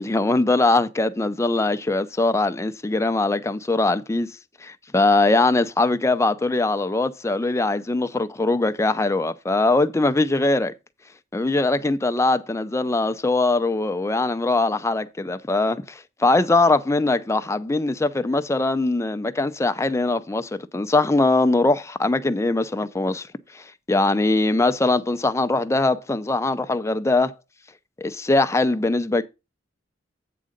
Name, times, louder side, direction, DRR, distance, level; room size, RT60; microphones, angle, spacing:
voice 1, 0.0-4.3 4.6-10.7 11.3-23.3 23.5-27.4 28.0-29.2, left 2 dB, 15° left, 0.5 m, -21 dB
8.5 x 3.8 x 6.5 m
head